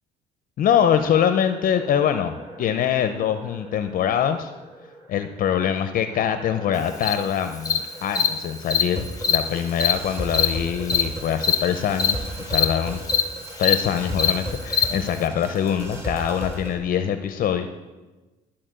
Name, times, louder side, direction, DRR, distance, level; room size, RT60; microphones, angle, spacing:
voice 1, 0.6-4.5 5.1-13.0 13.6-17.7, left 9 dB, 55° left, 9 dB, 0.6 m, -24 dB
sound 1, 0.7-16.7, equal, 15° right, 2.8 m, -37 dB
Cricket, 7.0-7.1 7.7-7.8 8.2-8.3 8.7-8.8 9.2-9.4 9.8-9.9 10.3-10.5 10.9-11.0 11.4-11.6 12.0-12.1 12.5-12.7 13.1-13.2 13.6-13.8 14.2-14.3 14.7-14.8, left 8 dB, 20° left, 1.0 m, -20 dB
12.5 x 4.3 x 7.6 m, 1.2 s
cardioid pair, 110°, 17 cm